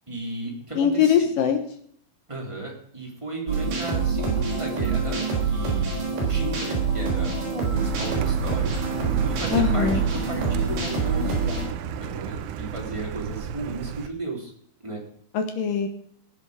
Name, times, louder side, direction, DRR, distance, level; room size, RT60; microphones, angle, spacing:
voice 1, 0.1-1.3 2.3-9.0 9.2-14.5 14.8-15.0, right 3 dB, 10° right, -2 dB, 2.0 m, -35 dB
voice 2, 0.8-1.6 9.5-10.0 15.3-15.9, left 8 dB, 75° left, 6 dB, 2.0 m, -21 dB
sound 1, 3.5-11.6, right 4 dB, 55° right, 5.7 m, -25 dB
Car, 7.8-14.1, right 9 dB, 80° right, 2.5 m, -33 dB
18.5 x 8.1 x 4.9 m, 0.63 s
omnidirectional pair, 5.6 m